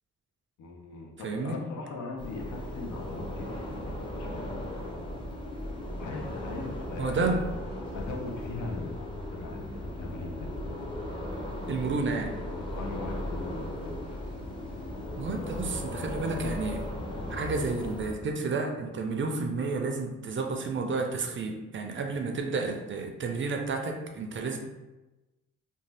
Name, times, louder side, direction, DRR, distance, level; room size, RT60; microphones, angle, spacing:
voice 1, 0.6-4.5 6.0-7.4 7.9-10.5 12.8-14.2, left 3 dB, 75° left, 1 dB, 0.6 m, -40 dB
voice 2, 1.2-1.6 7.0-7.4 11.7-12.4 15.2-16.9 17.3-24.6, right 3 dB, 40° right, 4 dB, 0.4 m, -31 dB
sound 1, 2.2-18.1, left 1 dB, 15° left, 0.6 m, -37 dB
sound 2, 7.7-12.7 13.8-18.2, left 3 dB, 45° left, 1.3 m, -47 dB
2.6 x 2.2 x 3.2 m, 1.1 s
cardioid pair, 90°, 30 cm